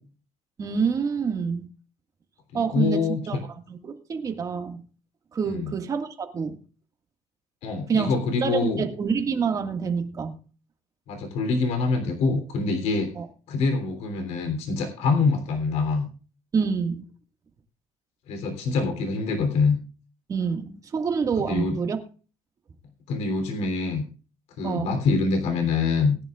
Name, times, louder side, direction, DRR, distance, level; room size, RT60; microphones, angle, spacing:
voice 1, 0.6-1.7 2.5-3.0 3.3-3.4 3.7-4.8 5.3-6.6 7.9-8.2 8.4-10.4 13.2-13.3 16.5-17.0 20.3-22.0 24.6-24.9, right 5 dB, 30° right, 5 dB, 1.8 m, -27 dB
voice 2, 2.5-3.4 5.5-5.7 7.6-8.8 11.1-13.1 13.5-16.1 18.3-19.8 21.4-21.8 23.1-24.0 24.6-26.2, left 4 dB, 75° left, 6 dB, 3.2 m, -25 dB
20.0 x 10.5 x 2.4 m, 0.37 s
cardioid pair, 145°, 11 cm